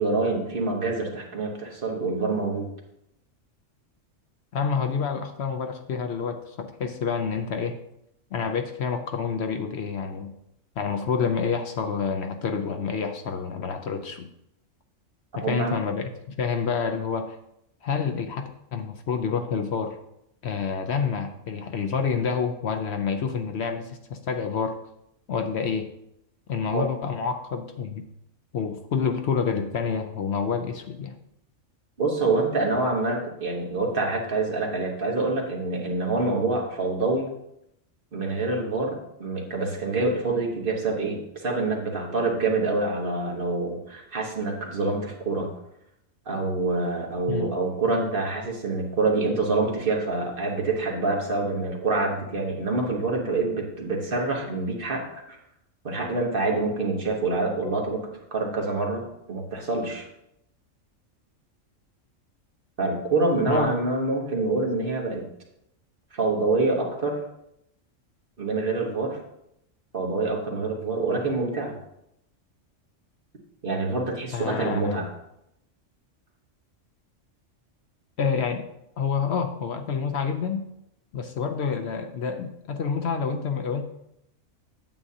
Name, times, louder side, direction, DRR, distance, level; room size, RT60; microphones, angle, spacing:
voice 1, 0.0-2.7 15.4-15.8 26.7-26.9 32.0-37.3 38.1-45.5 46.3-55.4 55.8-60.1 62.8-65.3 66.1-67.2 68.4-69.2 69.9-71.7 73.6-75.1, right 3 dB, 45° right, 0 dB, 1.4 m, -26 dB
voice 2, 4.5-7.8 8.3-10.3 10.8-14.3 15.4-16.1 16.4-17.4 17.8-20.0 20.4-24.8 25.3-25.9 26.5-28.0 28.5-31.2 47.3-47.6 63.4-63.7 74.3-75.1 78.2-78.7 79.0-80.7 81.1-83.8, left 6 dB, 65° left, 6 dB, 0.8 m, -28 dB
9.0 x 7.9 x 2.8 m, 0.79 s
omnidirectional pair, 1.3 m